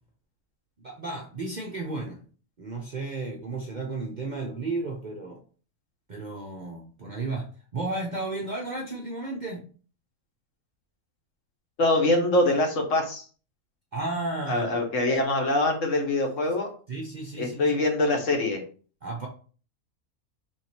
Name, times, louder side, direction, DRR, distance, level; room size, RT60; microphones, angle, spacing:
voice 1, 0.8-2.2 2.6-5.4 6.1-9.7 13.9-14.7 16.9-17.6 19.0-19.3, right 3 dB, 45° right, 0 dB, 0.6 m, -33 dB
voice 2, 11.8-13.2 14.5-16.7 17.4-18.6, left 2 dB, 65° left, 2 dB, 1.3 m, -24 dB
3.5 x 3.1 x 4.2 m, 0.40 s
omnidirectional pair, 1.5 m